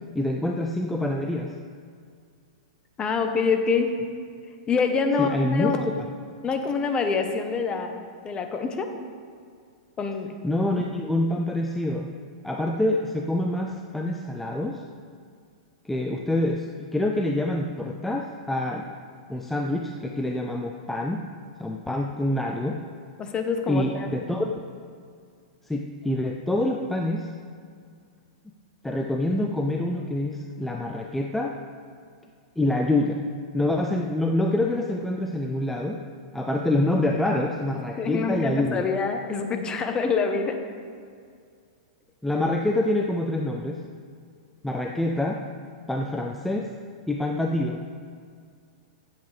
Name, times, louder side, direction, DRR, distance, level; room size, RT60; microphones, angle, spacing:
voice 1, 0.1-1.5 5.2-5.9 10.4-12.1 12.4-14.8 15.8-18.9 19.3-21.2 21.6-22.8 23.7-24.6 25.7-27.3 28.8-31.6 32.6-33.2 33.5-36.0 36.3-38.9 42.2-43.8 44.6-45.4 45.9-46.7 47.1-47.8, left 1 dB, 5° left, 1 dB, 0.6 m, -26 dB
voice 2, 3.0-3.9 4.7-5.9 6.4-8.9 10.0-10.3 23.2-24.4 38.0-40.6, left 5 dB, 25° left, 5 dB, 1.1 m, -26 dB
15.5 x 7.9 x 3.4 m, 2.2 s
hypercardioid pair, 115°, 4 cm